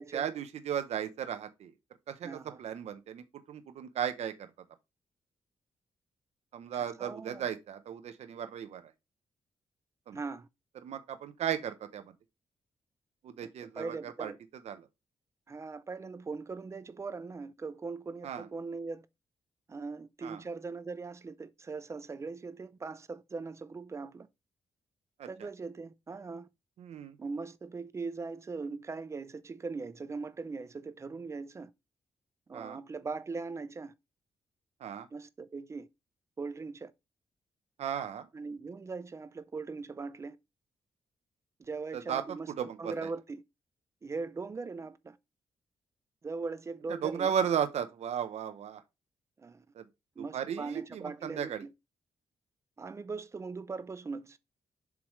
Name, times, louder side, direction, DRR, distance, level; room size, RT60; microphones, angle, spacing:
voice 1, 0.0-1.7 2.1-4.5 6.5-8.8 10.1-10.2 10.8-12.0 13.2-14.3 14.7-14.8 18.2-18.5 20.2-20.4 25.2-25.3 26.8-27.2 32.5-32.8 34.8-35.1 37.8-38.3 41.9-42.2 42.5-43.1 47.0-48.8 49.8-49.9 50.3-51.6, right 8 dB, 65° right, 0.7 m, -35 dB
voice 2, 2.2-2.6 6.7-7.5 10.1-10.5 13.4-14.4 15.5-19.1 19.7-24.3 25.3-26.5 27.2-31.7 32.5-33.9 35.1-35.9 36.4-36.9 38.3-40.4 41.6-42.5 42.8-43.4 44.0-45.2 46.2-47.3 49.4-49.7 50.2-51.7 52.8-54.4, right 4 dB, 25° right, 0.4 m, -40 dB
7.2 x 4.8 x 3.1 m
wide cardioid pair, 175°, 12 cm